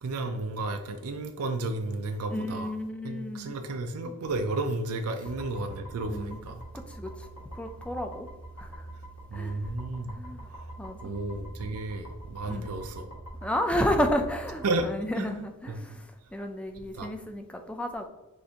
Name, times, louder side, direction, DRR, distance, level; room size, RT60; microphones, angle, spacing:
voice 1, 0.0-2.7 3.0-6.6 9.3-10.2 10.5-10.7 11.0-13.1 14.6-14.9 15.2-15.3 15.7-16.0 16.9-17.1, right 2 dB, 80° right, 6 dB, 0.4 m, -32 dB
voice 2, 2.3-3.6 4.0-4.2 6.1-6.4 6.7-7.3 7.5-8.3 8.6-8.8 9.3-9.6 10.2-10.5 10.8-11.2 11.6-11.7 12.5-12.7 13.4-16.0 16.3-18.1, equal, 5° left, 5 dB, 0.3 m, -32 dB
sound 1, 5.2-14.9, right 1 dB, 70° left, 1.3 m, -44 dB
6.3 x 2.6 x 2.8 m, 1.1 s
head